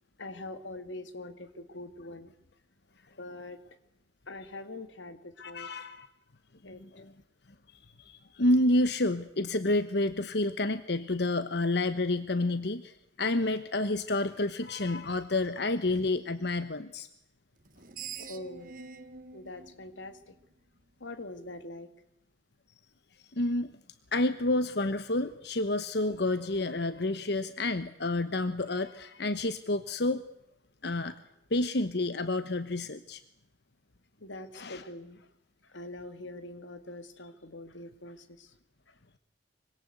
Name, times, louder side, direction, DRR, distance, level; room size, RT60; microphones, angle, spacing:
voice 1, 0.2-2.3 3.2-3.6 4.3-5.7 6.6-6.8 18.2-18.7 19.3-20.3 21.0-21.9 34.2-35.3 35.6-38.6 38.9-39.0, left 2 dB, 90° left, 10 dB, 2.4 m, -43 dB
voice 2, 5.4-6.1 6.8-7.1 7.7-17.1 23.3-23.7 24.1-30.2 30.8-31.2 31.5-33.2 34.5-34.8, left 2 dB, 60° left, 12 dB, 1.1 m, -29 dB
Screech, 17.6-20.8, right 6 dB, 50° right, 1.7 m, -46 dB
25.5 x 25.0 x 8.0 m, 0.80 s
head